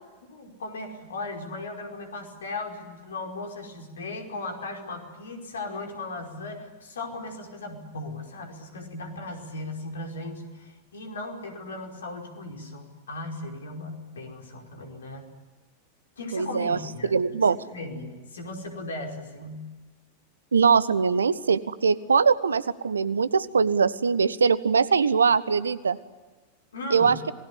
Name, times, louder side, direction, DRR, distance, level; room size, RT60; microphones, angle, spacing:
voice 1, 0.3-15.3 16.2-19.6 26.7-27.1, left 2 dB, 65° left, 3 dB, 5.1 m, -37 dB
voice 2, 16.3-17.6 20.5-26.0 26.9-27.2, right 5 dB, 70° right, 18 dB, 1.0 m, -22 dB
27.5 x 19.5 x 9.9 m, 1.3 s
figure-of-eight pair, 90°, 0 cm